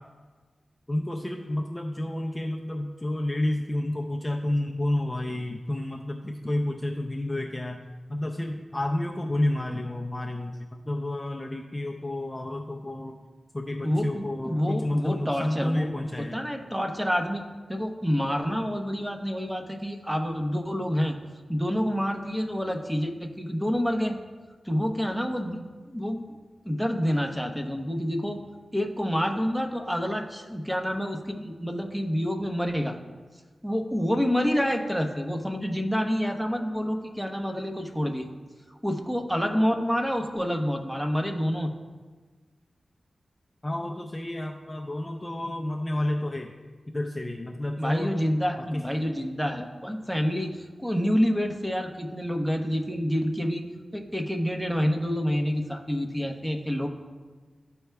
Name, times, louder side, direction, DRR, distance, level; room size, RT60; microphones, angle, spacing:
voice 1, 0.9-13.2 13.5-16.4 43.6-46.5 46.9-48.1 48.6-48.9, left 1 dB, 20° left, 1 dB, 0.5 m, -30 dB
voice 2, 13.8-15.9 16.2-21.2 21.5-24.2 24.6-26.4 26.6-28.4 28.7-33.0 33.6-38.3 38.8-41.7 47.8-53.7 53.9-56.9, equal, 5° right, 3 dB, 0.8 m, -28 dB
13.0 x 4.5 x 2.3 m, 1.4 s
cardioid pair, 60°, 0 cm